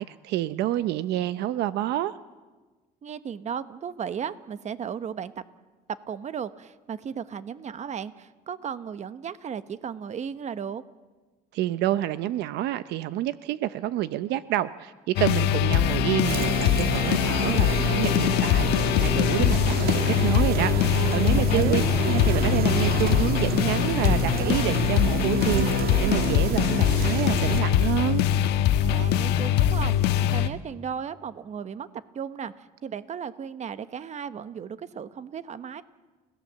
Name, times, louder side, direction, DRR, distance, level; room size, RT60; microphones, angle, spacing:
voice 1, 0.0-2.2 11.5-21.8 22.1-28.2, right 13 dB, 80° right, 14 dB, 0.7 m, -28 dB
voice 2, 3.0-5.3 6.1-10.8 21.3-21.9 28.8-35.8, right 7 dB, 45° right, 13 dB, 1.1 m, -35 dB
sound 1, 15.2-30.5, left 10 dB, 90° left, 1.2 m, -23 dB
sound 2, 16.2-27.6, right 7 dB, 65° right, 1.9 m, -29 dB
30.0 x 17.0 x 7.6 m, 1.3 s
cardioid pair, 110°, 17 cm